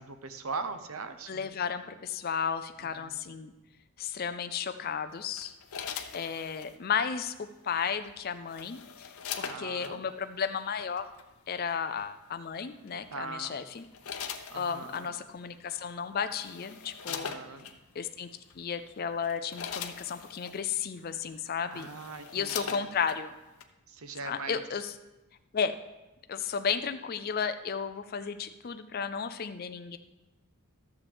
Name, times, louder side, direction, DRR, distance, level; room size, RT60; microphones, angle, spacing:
voice 1, 0.0-1.5 2.8-3.2 9.5-10.0 13.1-13.6 14.5-15.1 17.1-17.7 21.7-22.8 23.9-24.6, right 4 dB, 80° right, 9 dB, 0.7 m, -41 dB
voice 2, 1.3-3.5 4.0-5.5 6.1-11.1 11.5-13.8 14.5-17.3 18.0-18.3 18.6-21.9 22.3-23.3 24.2-24.9 25.5-25.8 26.3-30.0, left 6 dB, 45° left, 9 dB, 0.4 m, -33 dB
sound 1, 5.4-6.7 8.1-9.9 11.0-11.2 12.9-13.2 13.7-15.1 15.9-16.0 16.3-17.8 18.5-18.7 19.1-20.6 21.3-21.4 21.7-23.2 23.6-23.7, left 7 dB, 80° left, 0.7 m, -41 dB
13.5 x 6.9 x 3.5 m, 1.0 s
head